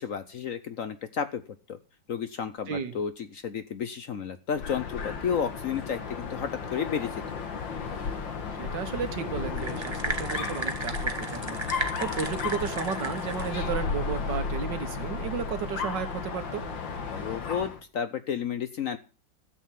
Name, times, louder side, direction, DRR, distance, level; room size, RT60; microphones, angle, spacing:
voice 1, 0.0-1.4 1.7-1.8 2.1-7.4 17.1-19.0, left 7 dB, 60° left, 11 dB, 0.9 m, -32 dB
Dog, 4.5-17.8, left 5 dB, 85° left, 2.4 m, -34 dB
voice 2, 8.5-16.6, right 7 dB, 70° right, 9 dB, 1.9 m, -34 dB
sound 1, 9.6-13.6, right 2 dB, 20° right, 1.0 m, -34 dB
12.5 x 7.8 x 7.3 m, 0.37 s
omnidirectional pair, 2.0 m